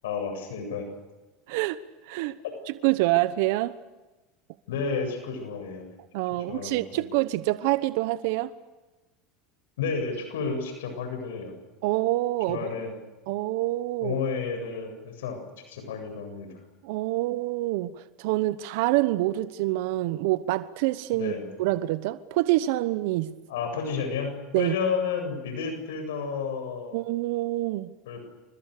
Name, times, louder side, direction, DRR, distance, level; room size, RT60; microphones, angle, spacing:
voice 1, 0.0-0.9 4.7-5.9 6.5-7.0 9.8-11.5 12.5-12.9 14.0-16.6 21.1-21.5 23.5-27.0 28.0-28.2, left 5 dB, 90° left, 8.0 m, -31 dB
voice 2, 1.5-1.8 2.1-2.4 2.7-3.8 6.1-8.5 11.8-12.7 13.3-14.2 16.8-21.3 21.6-23.3 24.5-24.8 26.9-27.9, right 17 dB, 70° right, 1.1 m, -26 dB
29.0 x 26.5 x 6.8 m
supercardioid pair, 115°, 0 cm